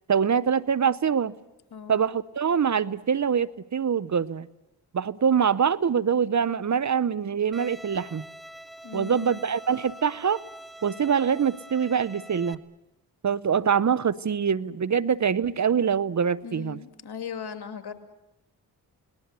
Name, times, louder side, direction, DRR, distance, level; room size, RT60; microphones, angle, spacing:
voice 1, 0.1-1.3 1.9-4.5 4.9-8.2 8.9-10.4 10.8-12.6 13.2-16.8, right 7 dB, 45° right, 0.8 m, -24 dB
Bowed string instrument, 7.5-12.5, right 1 dB, ahead, 1.4 m, -45 dB
voice 2, 8.8-9.4 16.4-17.9, left 7 dB, 70° left, 2.6 m, -38 dB
28.5 x 19.5 x 8.2 m
supercardioid pair, 45°, 40 cm